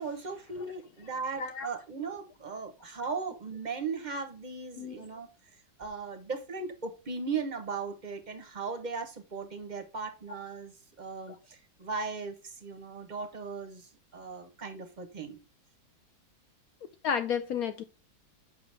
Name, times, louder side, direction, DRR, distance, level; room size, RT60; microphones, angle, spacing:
voice 1, 0.0-5.3 5.8-15.4, right 4 dB, 40° right, 0.6 m, -37 dB
voice 2, 17.0-17.8, left 7 dB, 75° left, 0.8 m, -32 dB
7.0 x 5.7 x 3.4 m
omnidirectional pair, 2.1 m